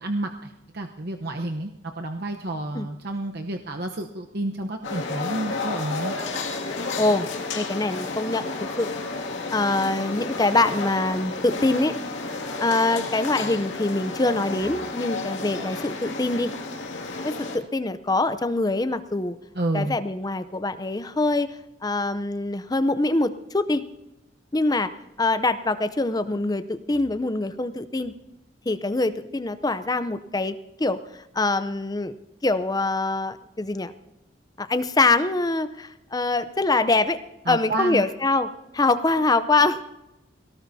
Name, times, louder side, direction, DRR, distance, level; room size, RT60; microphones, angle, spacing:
voice 1, 0.0-6.1 19.5-20.0 37.5-38.0, right 2 dB, 55° right, 3 dB, 0.9 m, -30 dB
sound 1, 4.8-17.6, left 3 dB, 85° left, 2.2 m, -32 dB
voice 2, 7.5-8.4 8.8-8.9 9.5-11.9 12.6-16.5 17.2-19.4 19.7-21.6 21.8-23.8 24.5-24.9 25.2-28.1 28.7-31.0 31.3-32.1 32.4-33.9 34.6-37.2 37.5-38.5 38.7-39.8, left 2 dB, 20° left, 12 dB, 0.6 m, -24 dB
23.0 x 18.0 x 2.7 m, 0.94 s
head